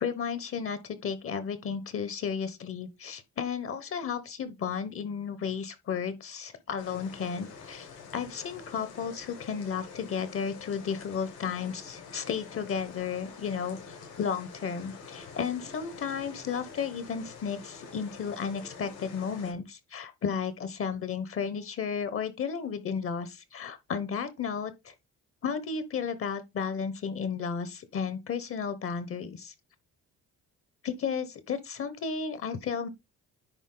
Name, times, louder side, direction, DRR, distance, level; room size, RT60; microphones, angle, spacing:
voice 1, 0.0-24.9 25.4-29.5 30.8-32.9, left 6 dB, 45° left, 1.1 m, -33 dB
sound 1, 6.8-19.5, left 5 dB, 85° left, 4.6 m, -47 dB
10.0 x 4.1 x 3.9 m
cardioid pair, 130°, 30 cm